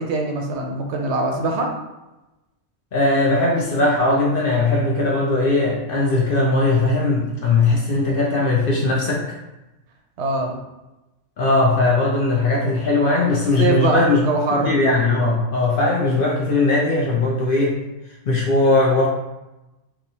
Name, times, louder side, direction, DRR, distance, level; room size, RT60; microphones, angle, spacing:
voice 1, 0.0-1.7 10.2-10.6 13.6-14.8, right 2 dB, 70° right, 2 dB, 0.8 m, -22 dB
voice 2, 2.9-9.2 11.4-14.3 14.6-17.8 18.3-19.1, left 2 dB, 60° left, -2 dB, 0.6 m, -19 dB
3.0 x 2.3 x 4.0 m, 0.99 s
omnidirectional pair, 1.3 m